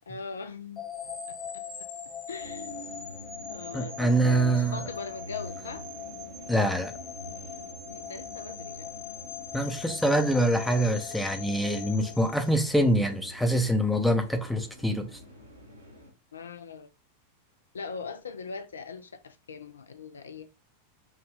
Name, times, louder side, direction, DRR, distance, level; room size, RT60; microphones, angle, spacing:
voice 1, 0.1-0.8 2.3-2.7 3.5-5.9 7.9-8.9 16.3-16.9 17.7-20.5, left 5 dB, 70° left, 0.3 m, -40 dB
sound 1, 0.8-12.9, left 7 dB, 40° left, 1.4 m, -41 dB
sound 2, 2.4-16.1, equal, 80° right, 0.9 m, -46 dB
voice 2, 3.7-4.8 6.5-6.9 9.5-15.1, right 1 dB, ahead, 0.5 m, -25 dB
3.6 x 2.2 x 3.0 m
figure-of-eight pair, 90°, 0 cm